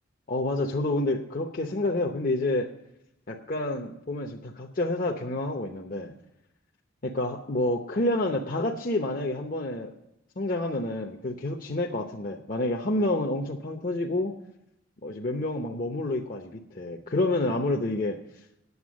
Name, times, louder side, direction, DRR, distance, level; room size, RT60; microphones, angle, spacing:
voice 1, 0.3-2.7 3.3-6.1 7.0-9.9 10.4-14.3 15.0-18.2, left 2 dB, 45° left, 1 dB, 0.8 m, -28 dB
9.6 x 7.9 x 6.2 m, 0.86 s
head